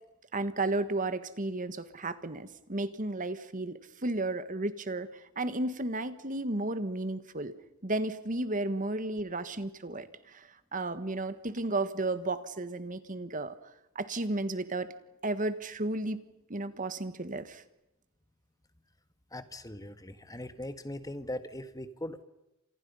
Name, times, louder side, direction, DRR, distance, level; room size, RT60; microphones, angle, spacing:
voice 1, 0.3-7.5 7.8-13.5 13.9-14.9 15.2-16.2 16.5-17.6, right 2 dB, 40° right, 12 dB, 1.6 m, -33 dB
voice 2, 19.3-22.2, left 1 dB, 15° left, 10 dB, 1.6 m, -40 dB
29.5 x 27.5 x 5.6 m, 0.90 s
head